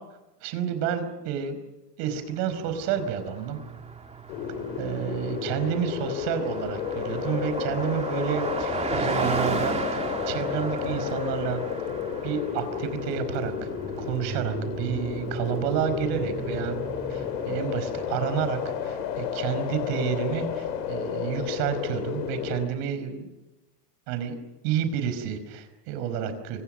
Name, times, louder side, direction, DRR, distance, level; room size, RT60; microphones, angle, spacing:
voice 1, 0.4-1.6 2.0-3.6 4.8-11.6 12.2-13.7 14.0-23.3 24.1-24.4 24.6-26.6, right 8 dB, 60° right, 10 dB, 5.1 m, -30 dB
Car passing by, 2.5-18.5, right 4 dB, 15° right, 2.7 m, -35 dB
sound 1, 4.3-22.7, left 8 dB, 90° left, 4.7 m, -32 dB
28.5 x 25.5 x 6.5 m, 1.0 s
supercardioid pair, 160°, 49 cm